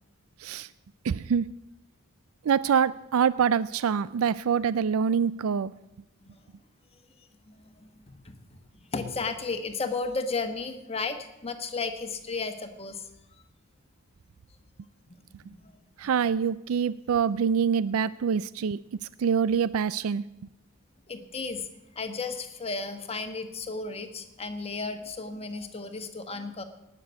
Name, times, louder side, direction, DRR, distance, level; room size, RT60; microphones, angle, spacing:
voice 1, 1.0-1.5 2.4-5.7 16.0-18.8 19.2-20.2, right 7 dB, 75° right, 18 dB, 0.4 m, -25 dB
voice 2, 7.8-8.3 8.9-13.0 15.3-15.6 21.1-21.6 21.9-26.6, left 4 dB, 30° left, 7 dB, 1.3 m, -34 dB
18.5 x 6.8 x 8.2 m, 0.96 s
head